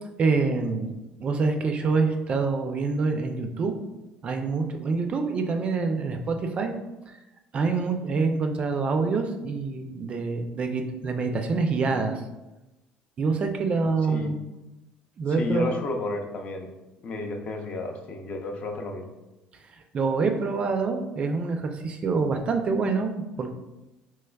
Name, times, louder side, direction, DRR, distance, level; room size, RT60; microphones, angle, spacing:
voice 1, 0.2-0.9 1.2-3.8 4.2-6.7 7.5-12.2 13.2-14.4 15.2-15.8 19.9-23.5, right 4 dB, 35° right, 5 dB, 0.3 m, -26 dB
voice 2, 15.4-16.7 17.0-19.1, left 2 dB, 45° left, 3 dB, 0.4 m, -32 dB
3.4 x 3.0 x 2.2 m, 1.0 s
cardioid pair, 120°, 3 cm